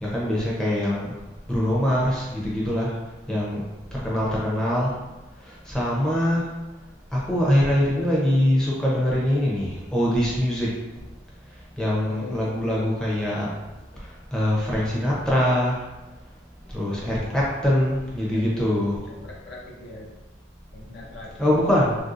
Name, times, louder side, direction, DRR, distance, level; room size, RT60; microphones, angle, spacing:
voice 1, 0.0-1.1 1.5-2.9 3.3-3.6 3.9-4.9 5.4-6.5 7.1-10.7 11.8-13.5 14.3-15.8 16.7-19.0 21.4-22.0, equal, 5° left, -6 dB, 0.6 m, -23 dB
voice 2, 12.0-12.5 18.3-18.4 19.1-20.1 20.7-21.7, left 2 dB, 55° left, -3 dB, 0.5 m, -41 dB
3.4 x 2.6 x 2.5 m, 1.1 s
head